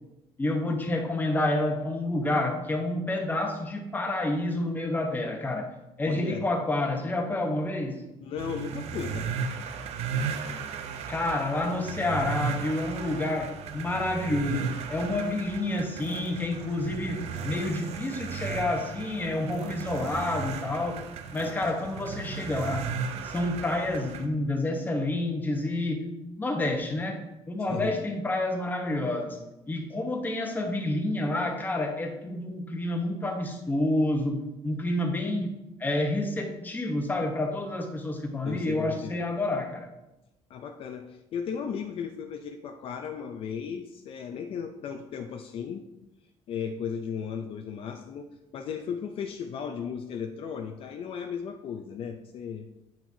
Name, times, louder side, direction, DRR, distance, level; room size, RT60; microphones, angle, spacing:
voice 1, 0.4-5.7 6.0-8.0 11.1-21.0 21.3-22.9 23.2-26.0 26.4-27.2 27.5-29.4 29.7-35.5 35.8-39.9, left 2 dB, 15° left, 3 dB, 1.1 m, -29 dB
voice 2, 6.1-6.4 8.2-9.5 27.7-27.9 38.4-39.2 40.5-45.8 46.5-52.7, left 7 dB, 50° left, 5 dB, 0.5 m, -36 dB
sound 1, 8.4-24.2, right 6 dB, 65° right, 0.7 m, -35 dB
8.9 x 5.9 x 2.8 m, 0.95 s
cardioid pair, 135°, 12 cm